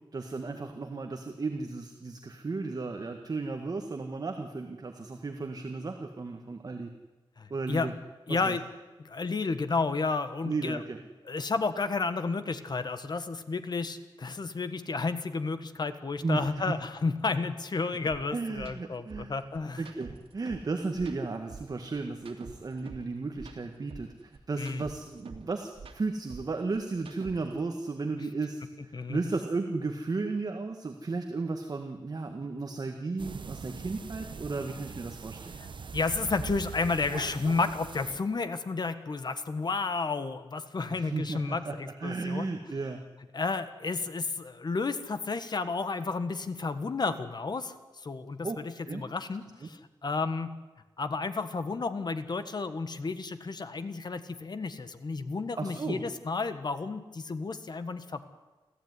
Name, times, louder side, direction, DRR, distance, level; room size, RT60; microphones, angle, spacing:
voice 1, 0.1-6.9 7.5-7.9 8.3-8.6 10.4-11.0 16.2-16.5 18.3-19.4 19.8-35.5 40.9-43.0 48.4-48.6 48.8-49.0 49.6-49.7 55.6-56.0, right 3 dB, 45° right, 4 dB, 1.8 m, -34 dB
voice 2, 7.4-7.9 8.3-8.6 9.0-10.8 11.2-19.8 24.6-24.8 28.9-29.2 35.6-42.5 43.3-50.5 51.0-58.2, left 4 dB, 50° left, 10 dB, 1.5 m, -32 dB
sound 1, 18.1-18.2 18.5-18.7 19.1-20.7 21.0-23.1 23.4-25.5 25.7-27.6, right 5 dB, 90° right, 2.6 m, -46 dB
sound 2, 33.2-38.2, right 5 dB, 60° right, 1.0 m, -42 dB
26.5 x 15.0 x 9.7 m, 1.2 s
wide cardioid pair, 145°, 9 cm